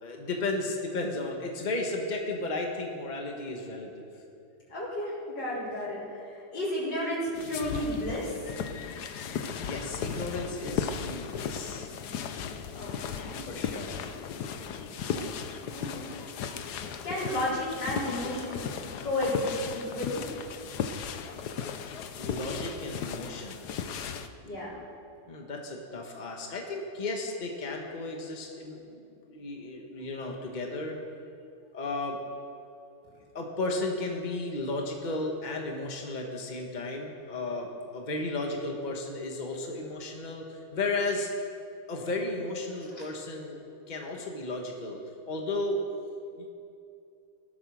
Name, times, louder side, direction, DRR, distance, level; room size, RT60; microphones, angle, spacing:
voice 1, 0.0-4.0 9.6-11.9 13.4-14.0 22.2-23.7 25.3-31.0 31.7-32.2 33.3-37.7 37.9-41.3 41.9-43.6 43.9-45.0 45.3-45.8 46.4-46.5, left 2 dB, 25° left, 1 dB, 1.6 m, -34 dB
voice 2, 4.7-8.6 12.7-13.4 15.0-15.4 15.7-16.1 17.0-18.7 19.0-20.2 24.4-24.8 42.9-43.0, left 1 dB, 90° left, -7 dB, 4.8 m, -33 dB
sound 1, 7.3-24.3, left 7 dB, 70° left, 1.3 m, -36 dB
18.5 x 11.5 x 6.4 m, 2.6 s
omnidirectional pair, 1.9 m